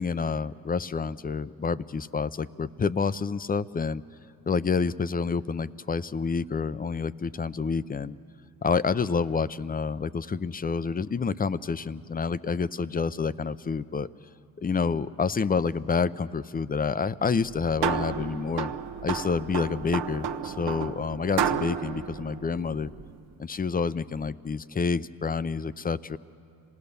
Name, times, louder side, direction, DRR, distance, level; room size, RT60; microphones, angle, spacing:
voice 1, 0.0-4.0 4.5-8.2 8.6-14.1 14.6-18.7 19.0-22.9 23.4-26.2, left 5 dB, 20° left, 16 dB, 0.5 m, -28 dB
sound 1, 17.4-23.2, right 7 dB, 65° right, 1.0 m, -32 dB
26.5 x 18.0 x 6.8 m, 2.7 s
supercardioid pair, 65°, 44 cm